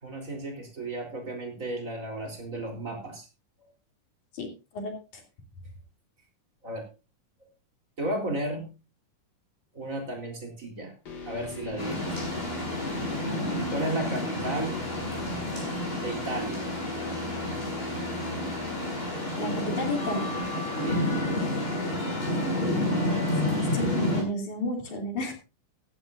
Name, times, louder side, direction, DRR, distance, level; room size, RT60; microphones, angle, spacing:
voice 1, 0.0-3.3 6.6-6.8 7.4-7.5 8.0-8.7 9.7-10.9 11.2-12.2 13.7-14.8 16.0-16.6 20.8-21.0, right 1 dB, 25° right, 2 dB, 4.2 m, -33 dB
voice 2, 4.3-5.2 19.3-20.4 23.4-25.3, left 1 dB, 65° left, 4 dB, 4.5 m, -33 dB
sound 1, 11.0-21.0, left 2 dB, 35° left, 2.2 m, -40 dB
sound 2, 11.8-24.2, left 1 dB, 15° left, 7.6 m, -30 dB
16.0 x 14.0 x 2.6 m, 0.31 s
omnidirectional pair, 3.8 m